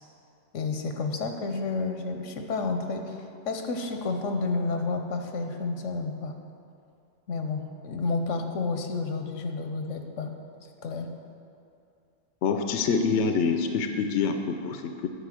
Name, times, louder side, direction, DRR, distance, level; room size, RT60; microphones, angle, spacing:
voice 1, 0.5-6.3 7.3-10.3 10.8-11.1, left 3 dB, 85° left, 5 dB, 1.2 m, -30 dB
voice 2, 12.4-15.1, left 5 dB, 70° left, 6 dB, 0.9 m, -26 dB
10.0 x 5.5 x 7.6 m, 2.5 s
omnidirectional pair, 1.3 m